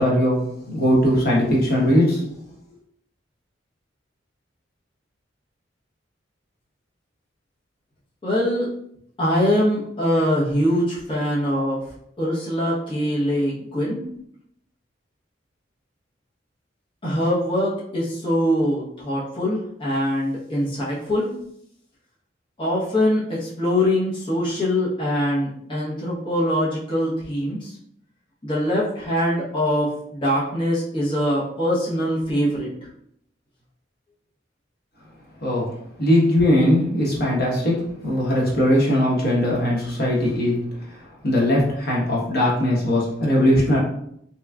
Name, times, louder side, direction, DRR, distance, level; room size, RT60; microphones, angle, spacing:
voice 1, 0.0-2.2 35.4-43.8, left 1 dB, 55° left, -4 dB, 1.0 m, -20 dB
voice 2, 8.2-8.7 9.2-11.8 12.2-14.0 17.0-21.3 22.6-27.7 28.4-32.7, equal, 25° left, -8 dB, 0.9 m, -23 dB
3.5 x 3.0 x 2.3 m, 0.71 s
head